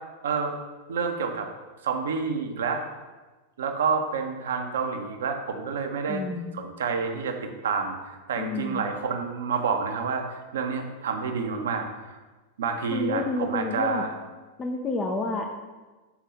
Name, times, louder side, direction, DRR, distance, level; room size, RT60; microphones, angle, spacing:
voice 1, 0.9-1.5 1.8-2.8 3.6-6.2 6.5-12.2 12.6-14.1, right 5 dB, 60° right, 4 dB, 0.9 m, -29 dB
voice 2, 6.1-6.5 8.4-8.9 12.9-14.0 14.6-15.5, left 3 dB, 20° left, 3 dB, 0.7 m, -29 dB
7.3 x 4.5 x 5.2 m, 1.2 s
figure-of-eight pair, 90°, 0 cm